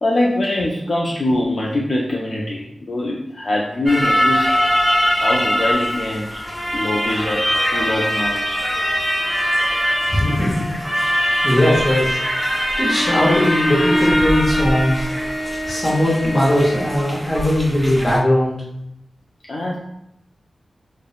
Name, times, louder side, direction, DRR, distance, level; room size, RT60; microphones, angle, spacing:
voice 1, 0.0-4.6 5.2-6.4 6.7-8.6 19.5-19.8, left 1 dB, 50° left, -4 dB, 0.3 m, -23 dB
sound 1, 3.9-18.2, equal, 5° right, 0.5 m, -22 dB
voice 2, 10.0-10.7 10.9-12.2 12.8-15.1 15.7-18.6, left 1 dB, 30° left, -5 dB, 0.8 m, -19 dB
Bowed string instrument, 12.8-17.2, equal, 80° left, 0.9 m, -24 dB
2.9 x 2.0 x 2.4 m, 0.81 s
wide cardioid pair, 100°, 0 cm